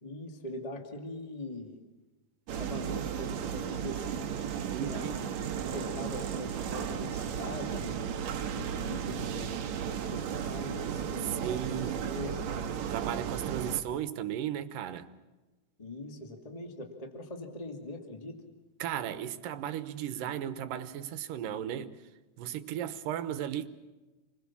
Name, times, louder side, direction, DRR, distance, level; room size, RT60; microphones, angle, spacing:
voice 1, 0.0-1.8 2.5-8.1 8.5-12.4 15.8-18.4, left 1 dB, 15° left, 2.0 m, -42 dB
sound 1, 2.5-13.8, right 8 dB, 60° right, 2.3 m, -35 dB
voice 2, 4.7-5.2 11.4-12.1 12.9-15.1 18.8-22.0 22.4-23.7, right 10 dB, 80° right, 2.7 m, -35 dB
29.0 x 21.0 x 7.3 m
omnidirectional pair, 3.9 m